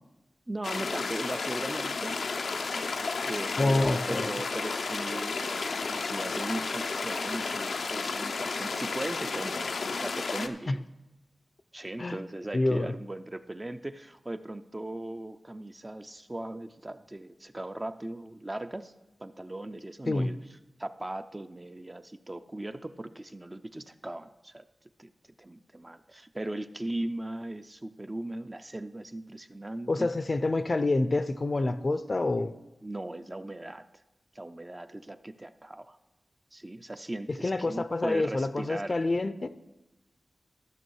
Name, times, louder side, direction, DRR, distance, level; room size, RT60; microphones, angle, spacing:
voice 1, 0.5-2.4 3.3-10.8 11.7-18.9 19.2-20.4 20.8-24.7 25.0-25.1 25.4-30.1 32.8-33.8 34.3-36.0 36.5-39.0, right 1 dB, 20° right, 0.4 m, -38 dB
sound 1, 0.6-10.5, left 4 dB, 85° left, 0.6 m, -32 dB
voice 2, 3.6-4.3 10.7-10.8 12.0-12.2 12.5-12.9 20.1-20.3 29.9-32.5 37.3-39.5, left 2 dB, 40° left, 0.5 m, -27 dB
14.0 x 6.2 x 4.6 m
wide cardioid pair, 100°, 0 cm